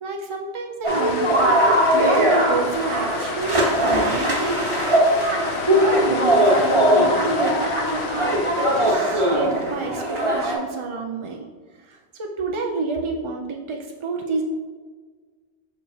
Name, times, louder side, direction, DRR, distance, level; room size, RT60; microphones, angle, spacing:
voice 1, 0.0-1.5 1.9-4.6 5.4-8.4 8.8-11.4 11.9-14.4, right 3 dB, 55° right, 2 dB, 0.3 m, -29 dB
sound 1, 0.8-10.6, right 1 dB, 30° right, 1.0 m, -20 dB
sound 2, 0.9-8.9, left 6 dB, 80° left, 0.8 m, -32 dB
6.4 x 5.5 x 2.8 m, 1.5 s
omnidirectional pair, 1.1 m